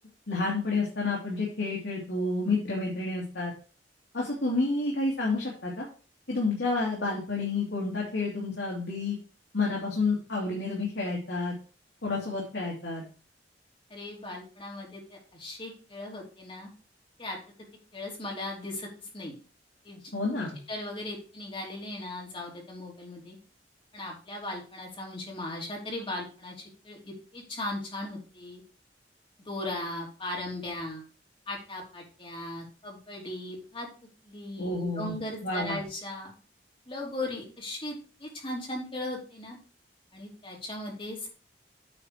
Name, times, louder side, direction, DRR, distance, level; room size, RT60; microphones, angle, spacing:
voice 1, 0.3-3.5 4.1-5.9 6.3-9.2 9.5-11.5 12.0-13.0 20.1-20.6 34.6-35.2 35.4-35.8, left 3 dB, 75° left, -3 dB, 2.4 m, -29 dB
voice 2, 13.9-16.7 17.2-17.4 17.9-18.9 19.1-19.3 19.8-20.1 20.4-23.4 23.9-26.5 26.8-28.6 29.4-31.0 31.5-33.9 34.2-36.3 36.9-39.6 40.1-41.3, left 1 dB, 30° left, -2 dB, 3.1 m, -38 dB
8.9 x 4.3 x 4.8 m, 0.36 s
head